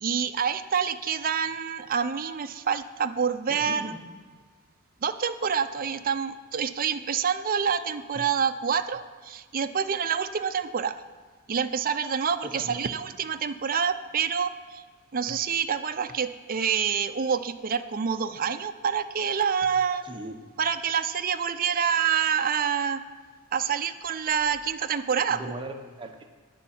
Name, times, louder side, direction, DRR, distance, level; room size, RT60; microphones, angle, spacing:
voice 1, 0.0-3.9 5.0-11.0 11.5-14.8 15.1-20.1 20.6-23.0 23.5-25.4, right 7 dB, 40° right, 9 dB, 0.5 m, -27 dB
voice 2, 3.5-4.0 12.4-12.7 20.0-20.4 25.3-26.3, right 1 dB, 25° right, 3 dB, 1.0 m, -38 dB
10.0 x 7.1 x 7.2 m, 1.5 s
head